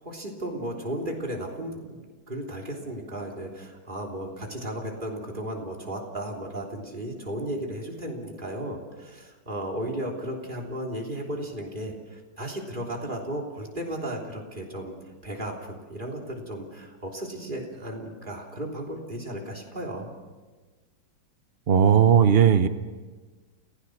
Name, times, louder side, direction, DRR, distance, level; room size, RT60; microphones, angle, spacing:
voice 1, 0.0-2.0 2.3-14.9 15.2-20.1, right 1 dB, 25° right, 0 dB, 3.4 m, -35 dB
voice 2, 21.7-22.7, right 8 dB, 70° right, 10 dB, 0.5 m, -17 dB
29.5 x 16.5 x 6.4 m, 1.3 s
omnidirectional pair, 2.2 m